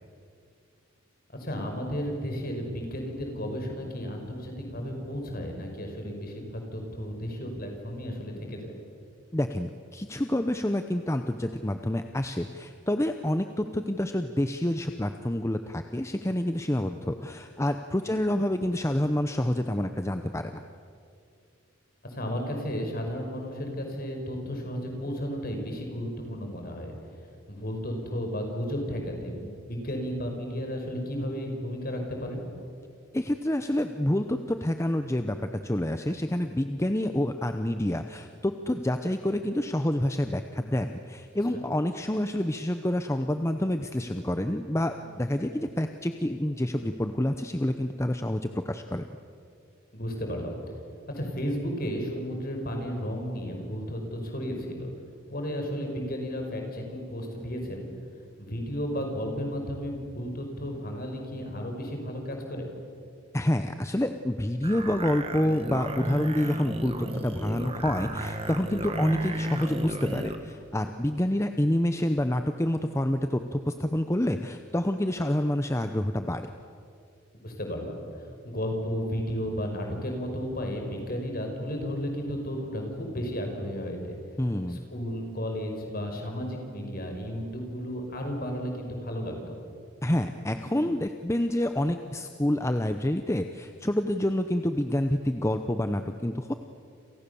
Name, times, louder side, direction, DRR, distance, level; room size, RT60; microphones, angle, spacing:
voice 1, 1.4-8.7 18.1-18.2 22.1-26.9 27.5-32.5 41.5-41.6 49.9-50.6 51.1-54.9 55.3-57.9 58.4-62.7 77.4-78.0 78.4-84.2 84.7-89.6, equal, 45° left, 3 dB, 5.6 m, -33 dB
voice 2, 9.3-20.6 33.1-49.1 63.3-76.5 84.4-84.8 90.0-96.5, left 1 dB, 15° left, 7 dB, 0.8 m, -28 dB
sound 1, 64.6-70.4, right 1 dB, 30° right, 1.9 m, -33 dB
29.5 x 28.0 x 7.1 m, 2.4 s
head